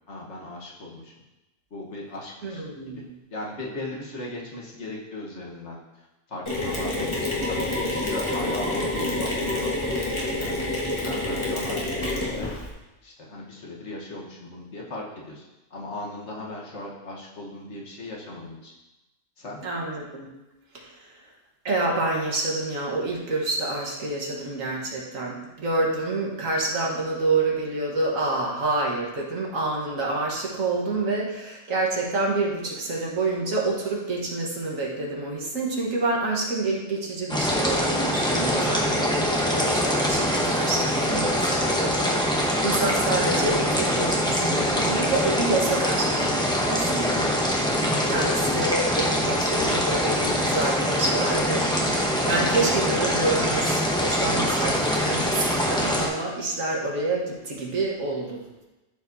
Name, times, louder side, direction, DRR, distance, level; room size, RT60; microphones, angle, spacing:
voice 1, 0.1-1.1 1.7-3.0 3.3-5.8 6.3-9.7 10.4-10.7 11.0-12.6 13.0-15.4 15.7-18.7 19.4-19.6 47.9-48.6, left 2 dB, 60° left, -2 dB, 1.6 m, -38 dB
voice 2, 2.4-3.0 7.1-7.2 19.6-20.3 20.7-21.1 21.7-47.3 48.1-58.4, right 2 dB, 80° right, -2 dB, 1.8 m, -28 dB
Mechanisms, 6.5-12.7, left 2 dB, 25° left, 1.4 m, -27 dB
sound 1, 37.3-56.1, equal, 5° left, 0.9 m, -24 dB
12.5 x 4.8 x 2.7 m, 1.0 s
omnidirectional pair, 1.3 m